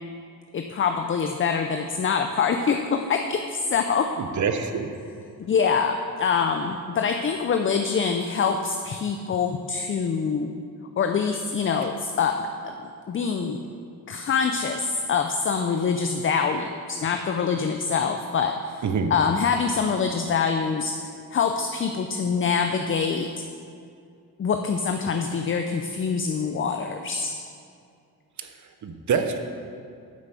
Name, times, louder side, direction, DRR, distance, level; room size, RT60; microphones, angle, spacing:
voice 1, 0.5-4.1 5.5-10.5 11.0-12.7 13.1-13.6 14.1-18.8 19.1-21.0 21.3-23.3 24.4-27.3, left 6 dB, 35° left, 5 dB, 0.5 m, -25 dB
voice 2, 4.2-4.9 18.8-19.1 28.4-29.4, right 6 dB, 60° right, 7 dB, 0.9 m, -26 dB
9.2 x 6.9 x 6.8 m, 2.3 s
wide cardioid pair, 135°, 34 cm